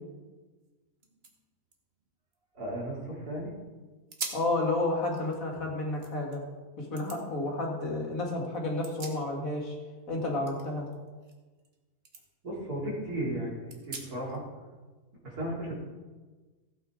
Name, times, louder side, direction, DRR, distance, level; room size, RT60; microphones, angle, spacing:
sound 1, 0.6-0.7 1.0-3.2 3.6-3.7 4.1-4.6 5.0-6.4 7.0-7.2 8.6-9.7 9.9-11.8 12.1-12.2 12.7-12.8 13.7-14.4, right 3 dB, 40° right, 1.5 m, -44 dB
voice 1, 2.5-3.5 12.4-13.6 13.9-14.4 15.2-15.7, right 1 dB, 65° right, -4 dB, 3.7 m, -34 dB
voice 2, 4.3-6.4 6.8-9.8 10.1-10.9, left 2 dB, 55° left, -1 dB, 2.5 m, -31 dB
15.5 x 8.7 x 3.8 m, 1.3 s
omnidirectional pair, 1.7 m